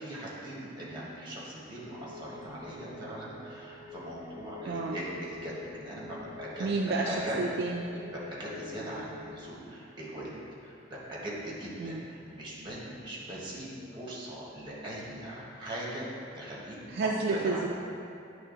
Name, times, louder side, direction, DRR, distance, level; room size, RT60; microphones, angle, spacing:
voice 1, 0.0-6.7 7.0-7.4 8.1-16.1 16.3-16.9 17.3-17.7, right 1 dB, 25° right, -6 dB, 1.5 m, -40 dB
sound 1, 1.8-9.4, left 4 dB, 40° left, 0.5 m, -47 dB
voice 2, 4.7-5.0 6.6-7.8 11.8-12.0 16.9-17.7, right 3 dB, 55° right, 0 dB, 0.4 m, -30 dB
9.8 x 3.3 x 3.9 m, 2.6 s
head